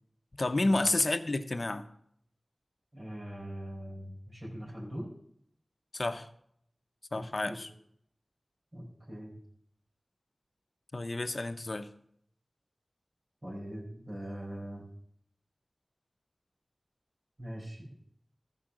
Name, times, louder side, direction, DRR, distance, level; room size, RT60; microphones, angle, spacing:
voice 1, 0.4-1.9 5.9-6.3 7.1-7.7 10.9-11.9, left 2 dB, 55° left, 10 dB, 0.8 m, -30 dB
voice 2, 2.9-5.1 7.1-7.7 8.7-9.3 13.4-14.8 17.4-17.9, equal, 40° right, -4 dB, 4.3 m, -42 dB
14.0 x 5.7 x 6.2 m, 0.67 s
wide cardioid pair, 55°, 0 cm